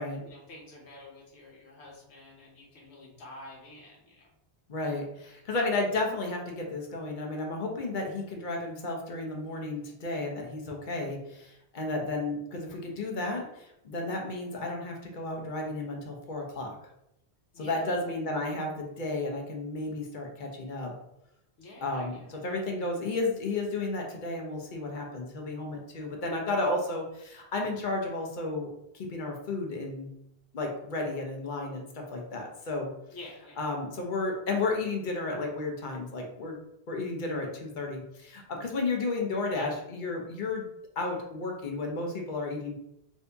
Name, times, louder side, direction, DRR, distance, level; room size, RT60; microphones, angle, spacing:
voice 1, 0.2-4.3 17.5-18.3 21.6-22.6 33.1-33.6 39.5-39.7, left 2 dB, 85° left, -2 dB, 1.1 m, -48 dB
voice 2, 4.7-16.7 17.6-20.9 21.8-28.7 28.9-30.1 30.5-32.9 33.6-36.6 36.9-40.7 41.0-42.7, left 2 dB, 55° left, 1 dB, 0.7 m, -33 dB
2.7 x 2.6 x 3.3 m, 0.81 s
omnidirectional pair, 1.1 m